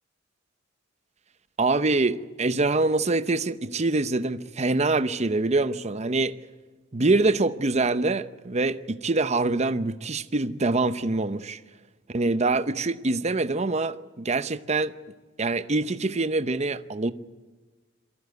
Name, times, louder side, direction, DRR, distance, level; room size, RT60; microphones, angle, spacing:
voice 1, 1.6-6.3 6.9-11.6 12.1-14.9 15.4-17.1, right 3 dB, 35° right, 0.8 m, -25 dB
24.0 x 14.5 x 9.4 m
head